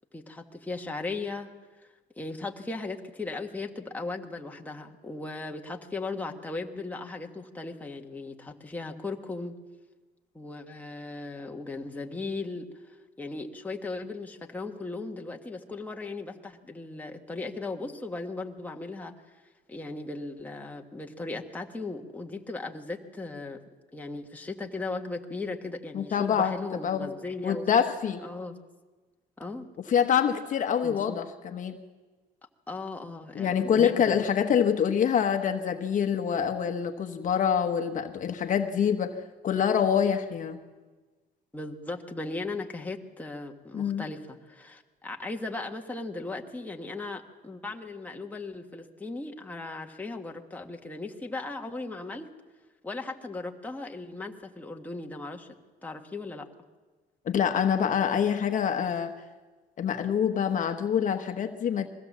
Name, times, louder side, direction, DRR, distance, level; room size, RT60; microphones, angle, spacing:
voice 1, 0.1-1.5 2.2-9.5 10.3-19.1 19.7-23.6 23.9-27.9 28.2-28.5 29.4-29.7 30.8-31.2 32.7-34.2 41.5-52.3 52.8-55.5 55.8-56.5, left 3 dB, 10° left, 2 dB, 1.5 m, -37 dB
voice 2, 25.9-27.1 27.4-28.2 29.9-31.8 33.3-39.2 39.4-40.6 43.7-44.0 57.2-59.1 59.8-61.9, left 8 dB, 50° left, 6 dB, 1.2 m, -26 dB
22.0 x 16.0 x 7.4 m, 1.3 s
cardioid pair, 110°, 17 cm